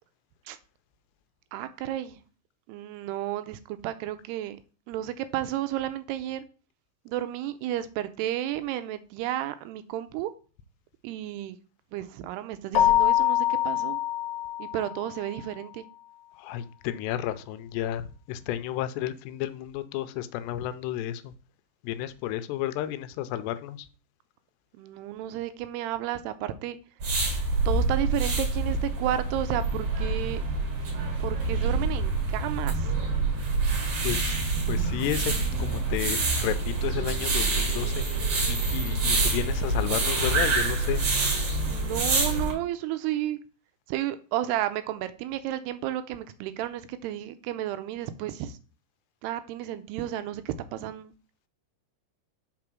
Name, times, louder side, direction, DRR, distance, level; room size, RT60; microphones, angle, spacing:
voice 1, 1.5-2.2 2.7-4.6 4.9-6.4 7.1-10.3 11.0-11.6 11.9-14.0 14.6-15.8 24.7-26.8 27.7-30.4 31.2-32.8 41.7-43.4 43.9-48.5 49.2-51.1, right 12 dB, 85° right, 2.5 m, -32 dB
Keyboard (musical), 12.7-15.2, left 12 dB, 60° left, 2.4 m, -24 dB
voice 2, 16.4-21.3 21.8-23.9 34.0-34.4 34.7-35.3 35.6-38.0 38.5-41.0, left 12 dB, 85° left, 2.8 m, -32 dB
sound 1, 27.0-42.5, right 3 dB, 50° right, 2.1 m, -26 dB
5.6 x 4.9 x 6.0 m
omnidirectional pair, 4.8 m